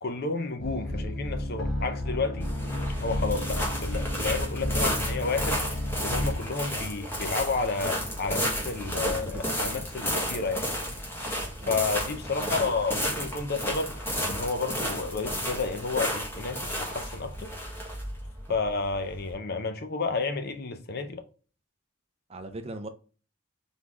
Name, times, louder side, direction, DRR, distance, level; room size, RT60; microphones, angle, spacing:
voice 1, 0.0-2.5 3.0-5.6 6.0-10.7 11.7-13.9 14.2-17.5 18.5-21.2, left 4 dB, 50° left, 0.6 m, -31 dB
sound 1, 0.6-6.4, left 1 dB, 70° left, 1.0 m, -32 dB
sound 2, 2.4-19.3, equal, 10° left, 1.3 m, -32 dB
voice 2, 8.9-9.6 11.6-11.8 12.4-12.7 18.5-18.6 22.3-22.9, right 2 dB, 30° right, 0.5 m, -40 dB
4.0 x 3.6 x 3.0 m
head